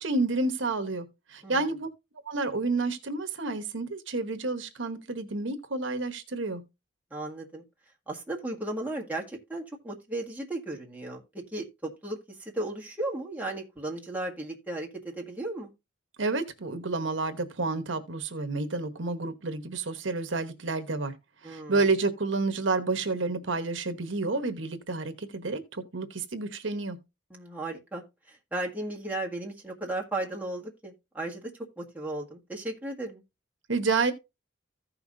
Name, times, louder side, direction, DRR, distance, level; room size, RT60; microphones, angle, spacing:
voice 1, 0.0-1.9 2.2-6.6 16.2-21.1 21.4-27.0 33.7-34.1, right 3 dB, 70° right, 1.1 m, -30 dB
voice 2, 7.1-7.6 8.1-15.7 21.4-21.8 27.3-31.5 31.8-33.2, right 2 dB, 10° right, 1.6 m, -35 dB
15.0 x 5.7 x 2.6 m
head